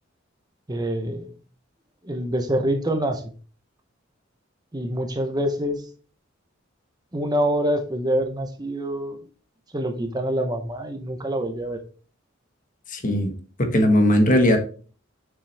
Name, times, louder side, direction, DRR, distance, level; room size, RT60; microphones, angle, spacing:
voice 1, 0.7-1.3 2.0-3.3 4.7-5.9 7.1-9.2 9.7-11.8 14.3-14.6, right 1 dB, 20° right, 0.8 m, -26 dB
voice 2, 12.9-13.3 13.6-14.6, left 1 dB, 40° left, 1.4 m, -18 dB
7.1 x 6.0 x 3.3 m
head